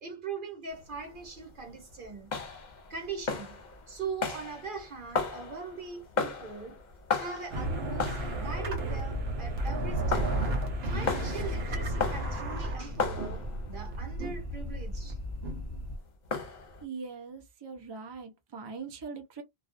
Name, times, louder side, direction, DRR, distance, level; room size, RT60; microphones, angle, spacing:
voice 1, 0.0-2.3 2.9-3.6 3.9-6.8 7.1-10.4 10.8-15.2, right 5 dB, 55° right, 1.0 m, -41 dB
sound 1, 0.7-16.8, left 4 dB, 50° left, 0.8 m, -37 dB
sound 2, 7.5-15.9, right 1 dB, 75° right, 1.0 m, -33 dB
sound 3, 8.0-16.0, left 1 dB, 20° left, 0.6 m, -41 dB
voice 2, 16.8-19.4, right 5 dB, 35° right, 0.4 m, -41 dB
2.4 x 2.2 x 2.4 m
omnidirectional pair, 1.1 m